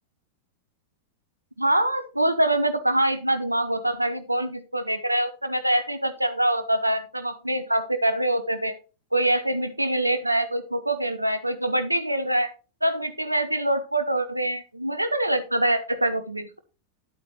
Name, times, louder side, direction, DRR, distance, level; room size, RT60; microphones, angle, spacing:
voice 1, 1.6-8.7 9.1-12.5 12.8-16.6, right 1 dB, 85° right, 10 dB, 0.9 m, -24 dB
10.5 x 8.3 x 2.9 m, 0.32 s
figure-of-eight pair, 90°, 0 cm